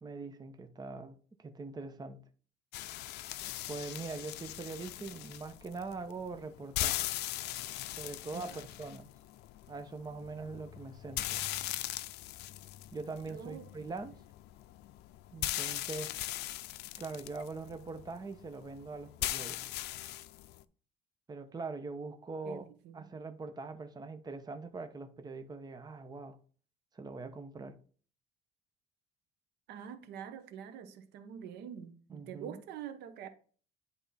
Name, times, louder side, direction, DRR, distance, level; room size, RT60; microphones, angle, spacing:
voice 1, 0.0-2.2 3.7-7.0 7.9-9.1 9.7-11.4 12.9-14.1 15.3-16.1 17.0-19.7 21.3-22.7 22.9-26.4 26.9-27.8 32.1-32.6, right 3 dB, 25° right, 0.9 m, -42 dB
sound 1, 2.7-20.6, left 15 dB, 80° left, 0.4 m, -40 dB
voice 2, 13.3-13.7 22.4-23.1 29.7-33.3, right 8 dB, 80° right, 0.9 m, -46 dB
10.0 x 3.5 x 4.2 m
cardioid pair, 110°, 17 cm